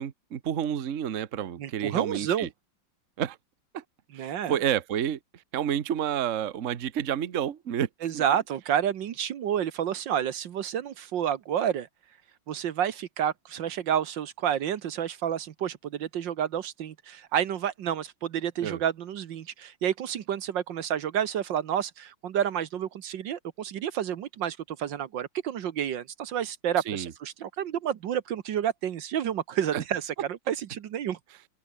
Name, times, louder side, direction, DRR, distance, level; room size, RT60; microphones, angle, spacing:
voice 1, 0.0-2.5 3.2-3.4 3.7-3.8 4.1-7.9 8.1-8.2 18.6-18.8 26.9-27.1 29.7-29.8, right 9 dB, 45° right, 1.2 m, -30 dB
voice 2, 1.6-2.5 4.1-4.6 8.0-11.9 12.5-31.2, right 9 dB, 70° right, 1.7 m, -30 dB
open air
omnidirectional pair, 2.2 m